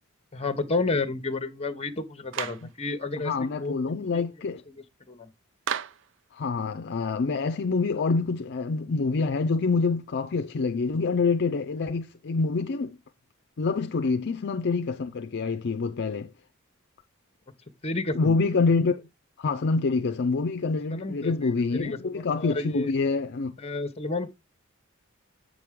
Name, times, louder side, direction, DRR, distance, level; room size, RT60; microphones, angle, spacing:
voice 1, 0.3-3.3 3.6-4.2 4.7-5.3 14.0-14.2 17.8-18.3 20.9-22.9 23.6-24.3, left 3 dB, 30° left, 1.0 m, -31 dB
Clapping, 2.3-2.7 5.7-6.1, right 8 dB, 60° right, 0.5 m, -32 dB
voice 2, 3.2-4.6 6.3-13.0 13.6-16.3 18.1-19.0 19.4-23.5, left 4 dB, 55° left, 0.5 m, -26 dB
8.2 x 6.2 x 3.5 m
head